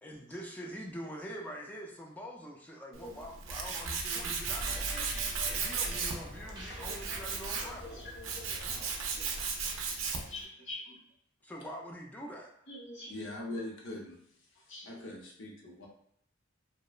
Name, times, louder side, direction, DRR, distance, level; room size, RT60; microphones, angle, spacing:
voice 1, 0.0-4.9 5.4-8.1 11.4-12.5, equal, 10° left, -1 dB, 0.3 m, -44 dB
Tools, 2.9-10.4, right 5 dB, 85° right, 0.4 m, -36 dB
sound 1, 4.4-9.4, equal, 20° right, 0.7 m, -44 dB
voice 2, 7.8-8.7 10.2-11.0 12.7-13.1 13.4-13.6 14.7-15.1, left 2 dB, 85° left, -5 dB, 1.0 m, -46 dB
voice 3, 13.1-14.2 14.5-15.9, left 1 dB, 65° left, -2 dB, 0.7 m, -42 dB
2.8 x 2.0 x 2.3 m, 0.71 s
head